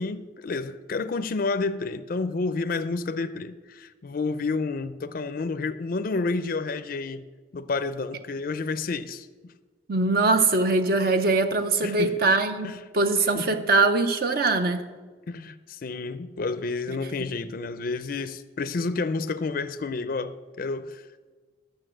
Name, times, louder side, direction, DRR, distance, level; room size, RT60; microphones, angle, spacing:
voice 1, 0.0-7.2 7.5-9.3 11.8-12.1 12.6-12.8 13.3-13.6 15.3-21.0, left 3 dB, 50° left, 11 dB, 0.4 m, -30 dB
voice 2, 9.9-14.8, right 3 dB, 50° right, 8 dB, 0.6 m, -22 dB
12.0 x 6.7 x 7.8 m, 1.4 s
head